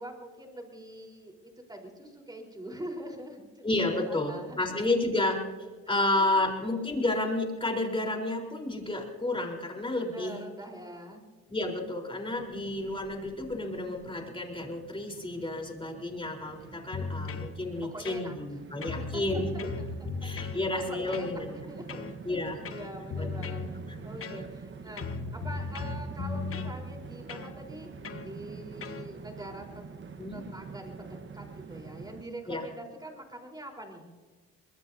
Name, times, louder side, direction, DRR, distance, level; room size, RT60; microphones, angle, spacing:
voice 1, 0.0-3.7 4.1-5.0 5.8-6.5 10.1-11.2 17.9-18.4 18.8-19.4 20.5-23.8 24.0-27.9 28.2-29.9 30.3-34.2, right 1 dB, 15° right, 2 dB, 4.2 m, -44 dB
voice 2, 3.6-5.4 5.9-10.4 11.5-19.7 20.2-21.5 22.2-22.6 23.2-23.5 24.3-24.4 30.2-30.5 32.5-32.6, left 2 dB, 15° left, 1 dB, 4.1 m, -31 dB
Train, 12.3-32.2, right 5 dB, 40° right, 1.2 m, -46 dB
sound 1, 16.9-17.5 18.0-18.5 18.8-20.6 21.1-21.4 21.9-22.2 22.6-23.7 24.2-24.7 25.0-26.8 27.3-27.5 28.0-28.3 28.8-29.0, left 4 dB, 45° left, 1.3 m, -36 dB
24.0 x 21.0 x 2.8 m, 1.4 s
cardioid pair, 90°, 30 cm